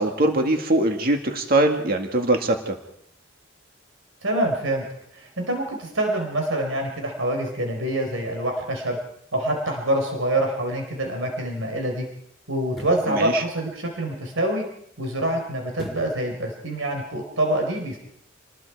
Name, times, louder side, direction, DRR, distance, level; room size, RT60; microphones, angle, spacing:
voice 1, 0.0-2.8 13.1-13.4, right 2 dB, 50° right, 4 dB, 2.0 m, -22 dB
voice 2, 4.2-4.9 5.1-9.0 9.3-12.0 12.5-14.6 15.0-18.0, right 1 dB, 85° right, 2 dB, 4.2 m, -26 dB
sound 1, 12.6-13.1 15.7-16.2 16.7-16.8, left 1 dB, ahead, 4.3 m, -38 dB
28.0 x 20.0 x 4.8 m, 0.70 s
head